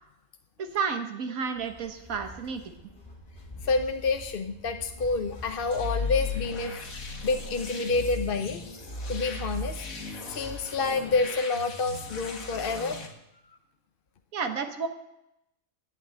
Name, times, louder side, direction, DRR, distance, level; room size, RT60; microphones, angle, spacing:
voice 1, 0.6-2.7 14.3-14.9, right 5 dB, 80° right, 6 dB, 1.5 m, -31 dB
sound 1, 1.5-11.3, left 1 dB, 30° left, 1.9 m, -48 dB
voice 2, 3.6-8.6 9.1-9.8 10.3-13.0, left 4 dB, 45° left, 6 dB, 0.9 m, -28 dB
sound 2, 5.7-13.1, left 3 dB, 80° left, 2.2 m, -36 dB
11.5 x 9.0 x 8.9 m, 0.85 s
omnidirectional pair, 1.4 m